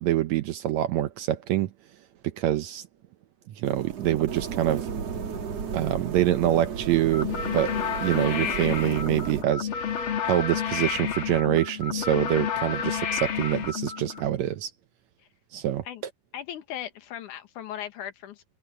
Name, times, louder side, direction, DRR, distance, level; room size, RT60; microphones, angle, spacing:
voice 1, 0.0-1.7 2.2-2.9 3.6-4.9 5.7-7.8 8.0-9.7 10.2-14.7 15.5-15.8, right 13 dB, 75° right, 1.8 m, -25 dB
sound 1, 3.6-9.4, right 6 dB, 55° right, 3.3 m, -34 dB
sound 2, 7.1-14.3, left 7 dB, 50° left, 1.8 m, -30 dB
voice 2, 16.3-18.4, left 11 dB, 70° left, 2.8 m, -38 dB
omnidirectional pair, 3.7 m